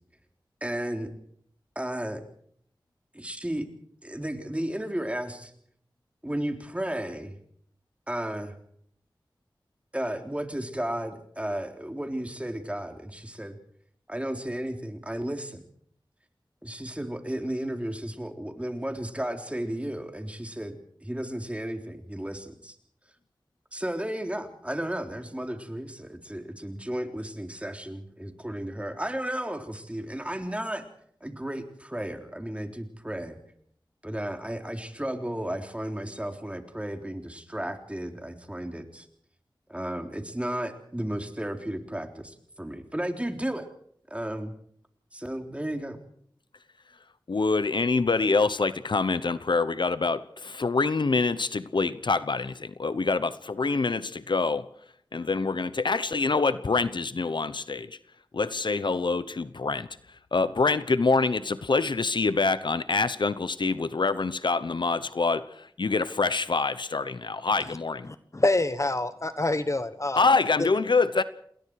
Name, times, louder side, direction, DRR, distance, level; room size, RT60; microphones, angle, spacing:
voice 1, 0.6-1.1 1.8-2.2 3.1-3.7 4.0-5.5 6.2-7.3 8.1-8.5 9.9-13.6 14.1-15.6 16.6-20.8 21.0-22.7 23.7-30.8 31.2-33.4 34.0-39.1 39.7-43.7 44.1-44.5 45.1-46.0, right 1 dB, 15° right, 5 dB, 3.6 m, -33 dB
voice 2, 47.3-54.7 55.1-58.0 58.3-59.9 60.3-68.1 70.1-71.2, left 4 dB, 70° left, 14 dB, 0.9 m, -25 dB
voice 3, 68.1-70.2 70.6-70.7, left 2 dB, 40° left, 11 dB, 1.3 m, -26 dB
28.0 x 20.5 x 4.8 m, 0.64 s
wide cardioid pair, 50°, 8 cm